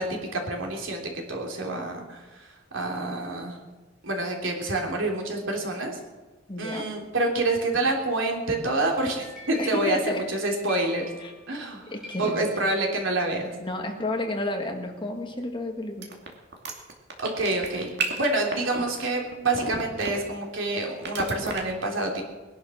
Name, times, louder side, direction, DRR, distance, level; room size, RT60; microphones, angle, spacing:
voice 1, 0.0-3.6 4.0-6.0 6.6-11.1 11.5-11.9 12.2-13.5 17.2-22.2, right 2 dB, 80° right, 1 dB, 3.3 m, -27 dB
voice 2, 6.5-6.9 9.6-10.3 11.2-11.3 11.9-12.5 13.6-16.1, left 1 dB, 25° left, 3 dB, 1.8 m, -31 dB
sound 1, 8.9-11.7 12.0-13.3, left 1 dB, 5° right, 5.7 m, -45 dB
sound 2, 16.0-20.5 21.0-21.6, right 4 dB, 60° right, 2.6 m, -31 dB
20.5 x 11.0 x 6.3 m, 1.2 s
head